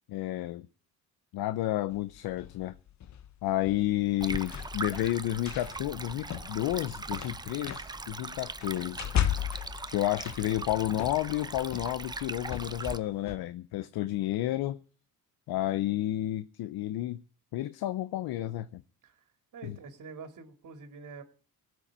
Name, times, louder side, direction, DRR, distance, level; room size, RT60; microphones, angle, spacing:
voice 1, 0.1-0.7 1.3-2.8 3.4-9.1 9.9-14.8 15.5-17.2 17.5-18.8 19.6-19.8, left 14 dB, 75° left, 0.7 m, -31 dB
sound 1, 1.9-13.4, left 10 dB, 50° left, 1.0 m, -37 dB
Stream, 4.2-13.0, right 3 dB, 10° right, 0.6 m, -40 dB
voice 2, 19.5-21.2, right 5 dB, 55° right, 2.6 m, -46 dB
17.5 x 6.4 x 8.7 m
cardioid pair, 100°, 37 cm